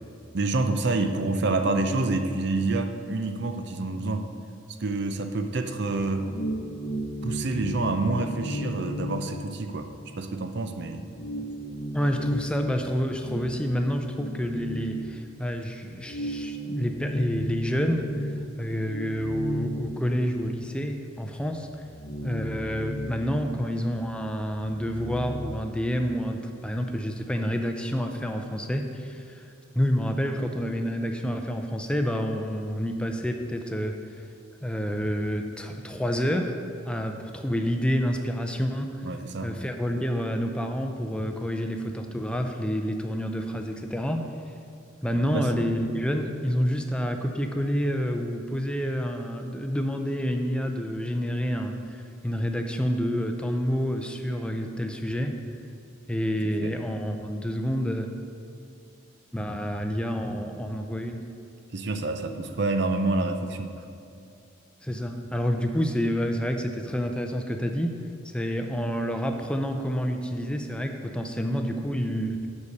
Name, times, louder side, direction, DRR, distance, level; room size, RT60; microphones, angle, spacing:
voice 1, 0.3-4.3 4.8-6.3 7.2-9.9 10.2-11.1 39.0-39.5 45.3-45.7 56.6-56.7 61.7-63.8, right 2 dB, 55° right, 7 dB, 0.6 m, -27 dB
sound 1, 6.1-10.2 10.6-10.7 11.1-15.6 16.0-20.7 21.1-21.2 21.6-24.1 24.3-25.5, equal, 40° left, 0.9 m, -35 dB
voice 2, 11.9-18.3 18.6-21.7 22.2-29.4 29.7-34.2 34.6-36.6 36.9-39.1 39.4-44.3 45.0-55.4 56.1-58.1 59.3-61.3 64.8-68.0 68.3-72.5, equal, 5° left, 4 dB, 0.5 m, -28 dB
8.2 x 6.5 x 5.3 m, 2.6 s
head